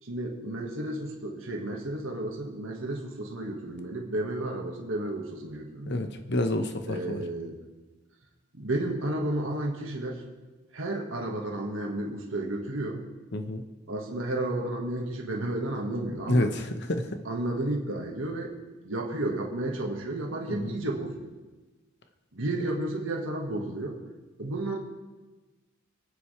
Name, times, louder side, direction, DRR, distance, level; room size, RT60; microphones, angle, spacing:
voice 1, 0.0-6.1 6.9-7.5 8.5-10.2 10.7-13.0 13.9-16.5 17.2-18.6 18.8-21.3 22.3-24.0 24.4-24.8, right 1 dB, 75° right, 0 dB, 1.7 m, -32 dB
voice 2, 5.9-7.2 13.3-13.6 16.3-16.6 16.9-17.0, left 1 dB, 60° left, 7 dB, 1.1 m, -27 dB
26.0 x 9.0 x 3.4 m, 1.2 s
head